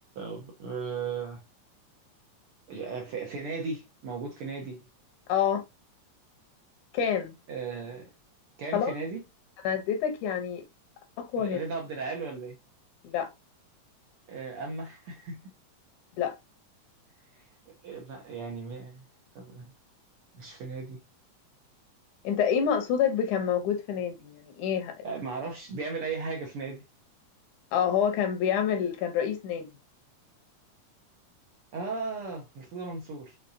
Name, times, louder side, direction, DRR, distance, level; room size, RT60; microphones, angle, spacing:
voice 1, 0.1-1.4 2.7-4.8 7.5-8.1 8.6-9.2 11.4-12.6 14.3-15.4 17.3-17.4 17.8-19.0 19.3-19.7 20.3-21.0 25.0-26.8 31.7-33.4, right 4 dB, 65° right, 1.5 m, -36 dB
voice 2, 5.3-5.6 6.9-7.4 8.7-8.9 9.6-10.6 11.2-11.6 13.0-13.3 16.2-16.4 22.2-25.0 27.7-29.7, left 8 dB, 90° left, 2.3 m, -27 dB
5.6 x 3.5 x 2.6 m
omnidirectional pair, 3.4 m